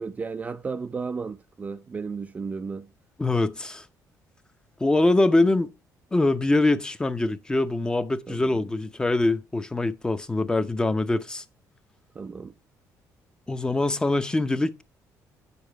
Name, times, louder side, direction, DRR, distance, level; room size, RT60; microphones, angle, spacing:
voice 1, 0.0-2.9 8.3-8.7 12.1-12.5, right 5 dB, 25° right, 0.4 m, -34 dB
voice 2, 3.2-3.8 4.8-5.7 6.1-11.4 13.5-14.8, left 2 dB, 10° left, 0.7 m, -23 dB
9.1 x 7.1 x 4.5 m
cardioid pair, 140°, 6 cm